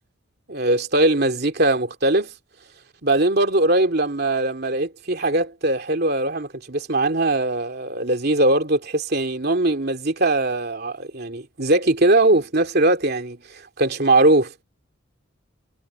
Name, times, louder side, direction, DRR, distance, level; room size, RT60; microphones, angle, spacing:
voice 1, 0.5-2.3 3.0-14.6, right 2 dB, 50° right, 2.9 m, -20 dB
head